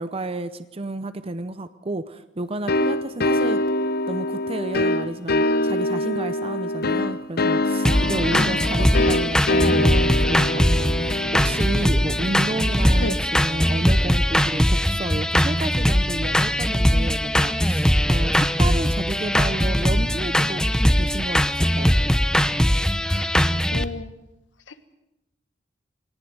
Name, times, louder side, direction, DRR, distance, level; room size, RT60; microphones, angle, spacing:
voice 1, 0.0-3.6 4.1-20.6 20.9-21.9, right 2 dB, 30° right, 11 dB, 0.7 m, -31 dB
sound 1, 2.7-13.2, left 1 dB, 55° left, 0.9 m, -24 dB
sound 2, 7.9-23.8, equal, 5° left, 0.8 m, -20 dB
voice 2, 8.3-8.9 13.0-13.2 23.1-23.4 23.7-24.2, left 2 dB, 80° left, 10 dB, 1.6 m, -31 dB
22.5 x 18.5 x 7.9 m, 0.92 s
head